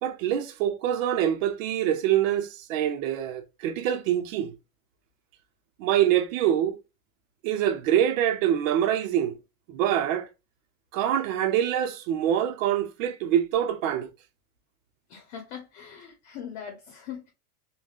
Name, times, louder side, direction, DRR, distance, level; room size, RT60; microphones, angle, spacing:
voice 1, 0.0-4.5 5.8-6.8 7.4-9.4 9.7-10.3 10.9-14.1, right 10 dB, 75° right, 0.7 m, -25 dB
voice 2, 15.1-17.3, left 8 dB, 55° left, 0.8 m, -41 dB
3.5 x 2.2 x 2.3 m
supercardioid pair, 135°, 40 cm